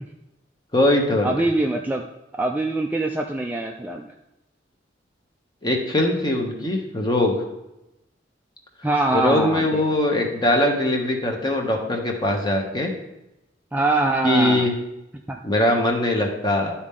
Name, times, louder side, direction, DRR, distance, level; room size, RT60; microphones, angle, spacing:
voice 1, 0.7-1.4 5.6-7.4 9.1-12.9 14.2-14.7 15.4-16.7, left 1 dB, 20° left, 2 dB, 1.1 m, -21 dB
voice 2, 1.2-2.0 2.4-4.1 8.8-9.8 13.7-14.7 15.3-15.4, right 2 dB, 10° right, 1 dB, 0.4 m, -23 dB
11.5 x 4.3 x 3.7 m, 0.93 s
head